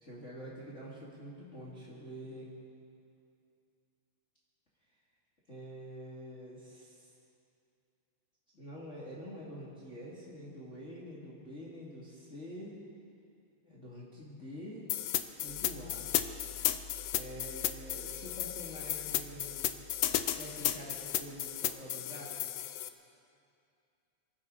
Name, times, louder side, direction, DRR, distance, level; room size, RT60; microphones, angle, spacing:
voice 1, 0.0-2.5 5.5-7.1 8.5-12.8 13.6-14.9 15.4-16.1 17.1-19.8 20.3-22.5, equal, 25° left, -7 dB, 2.5 m, -46 dB
sound 1, 14.9-22.9, left 13 dB, 75° left, 1.5 m, -34 dB
sound 2, 15.5-21.6, left 3 dB, 75° right, 0.6 m, -53 dB
24.5 x 14.5 x 4.0 m, 2.4 s
omnidirectional pair, 3.4 m